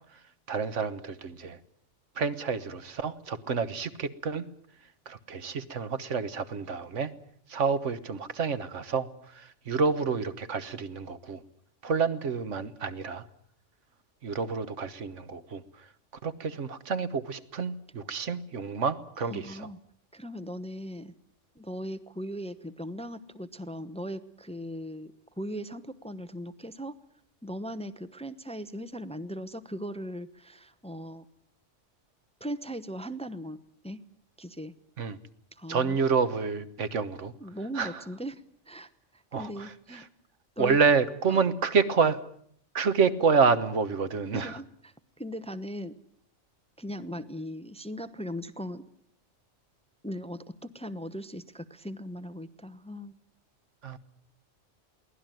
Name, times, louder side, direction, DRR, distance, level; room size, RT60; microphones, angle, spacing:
voice 1, 0.5-1.6 2.1-4.5 5.1-7.1 7.5-11.4 11.8-13.2 14.2-15.6 16.2-19.7 35.0-35.2 35.7-37.3 37.7-37.9 39.3-39.7 40.6-42.2 42.7-44.6 53.8-54.0, right 5 dB, 75° right, 12 dB, 1.5 m, -28 dB
voice 2, 19.3-19.8 20.1-21.1 21.5-27.0 27.4-31.2 32.4-34.0 34.4-34.7 35.5-36.0 37.4-40.0 40.6-40.8 41.3-41.4 44.3-46.0 46.8-48.8 50.0-53.2, equal, 5° left, 11 dB, 0.9 m, -39 dB
23.0 x 17.5 x 9.2 m, 0.64 s
omnidirectional pair, 1.2 m